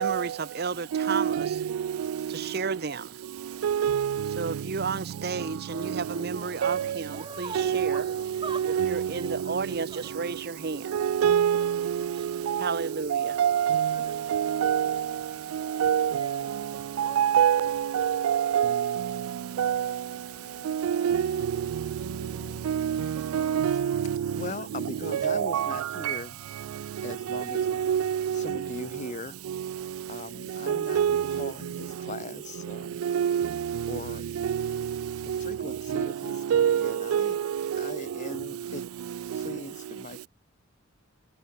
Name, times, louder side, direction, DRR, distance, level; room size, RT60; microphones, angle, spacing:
voice 1, 0.0-1.6 2.3-3.2 4.4-8.1 8.7-11.0 12.6-13.4, right 4 dB, 50° right, 0.8 m, -33 dB
voice 2, 0.9-1.5 3.6-4.4 6.6-6.9 7.6-9.4 10.9-12.7 13.1-15.0 15.8-16.4 17.0-19.0 19.6-19.9 20.7-21.4 22.7-24.2 25.1-25.8 26.1-26.2 27.3-28.6 30.7-31.5 33.0-33.8 34.4-34.9 35.3-35.6 35.9-36.1 36.5-37.4 37.8-37.9, right 9 dB, 85° right, 0.3 m, -26 dB
sound 1, 5.8-17.8, right 3 dB, 20° right, 5.0 m, -46 dB
sound 2, 20.1-26.1, left 2 dB, 55° left, 1.5 m, -51 dB
voice 3, 24.3-26.4 27.0-27.7 28.3-29.4 30.1-33.0 33.9-34.3 35.2-37.4 37.8-38.8 39.3-40.3, left 3 dB, 35° left, 0.7 m, -40 dB
head